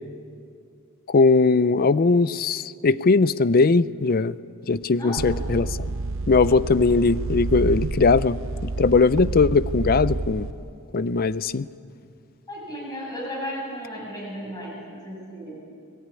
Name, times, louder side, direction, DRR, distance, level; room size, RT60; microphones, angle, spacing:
voice 1, 1.1-4.3 4.7-5.9 6.3-10.5 10.9-11.7, left 4 dB, 40° left, 17 dB, 0.5 m, -20 dB
voice 2, 5.0-5.5 12.5-15.6, equal, 15° left, -3 dB, 7.3 m, -35 dB
sound 1, 5.2-10.5, right 3 dB, 60° right, 0.7 m, -29 dB
23.0 x 19.0 x 9.7 m, 2.5 s
head